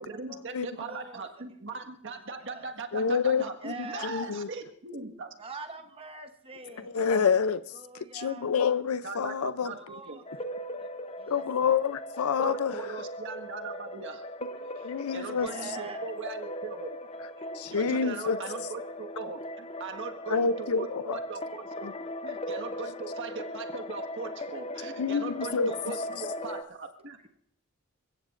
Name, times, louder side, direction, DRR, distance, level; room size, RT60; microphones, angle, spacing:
voice 1, 0.0-5.3 9.0-10.2 12.4-14.3 14.8-17.0 17.4-17.5 17.7-19.4 19.8-21.9 22.2-27.3, right 4 dB, 60° right, 1.6 m, -40 dB
voice 2, 0.7-1.2 2.5-2.7 3.6-4.1 5.4-7.4 7.7-8.5 9.7-10.4 10.8-10.9 11.2-11.7 15.3-16.0 17.6-17.7, right 3 dB, 25° right, 1.0 m, -44 dB
voice 3, 2.9-3.7 4.0-4.5 6.9-7.6 8.1-9.7 11.3-12.8 14.8-15.5 17.5-18.4 20.3-21.2 25.0-25.7, left 6 dB, 85° left, 0.6 m, -27 dB
sound 1, 10.3-26.6, left 1 dB, 30° left, 0.7 m, -39 dB
29.0 x 16.5 x 2.5 m
head